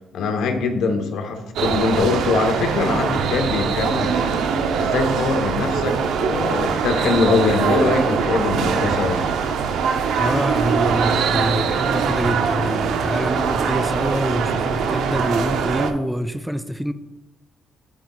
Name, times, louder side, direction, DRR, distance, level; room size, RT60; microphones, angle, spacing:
voice 1, 0.1-4.5 4.8-9.2, left 4 dB, 80° left, 0.9 m, -22 dB
sound 1, 1.6-15.9, right 6 dB, 80° right, 0.6 m, -22 dB
voice 2, 10.1-16.9, equal, 5° right, 0.3 m, -26 dB
12.0 x 5.0 x 2.3 m
cardioid pair, 90°, 0 cm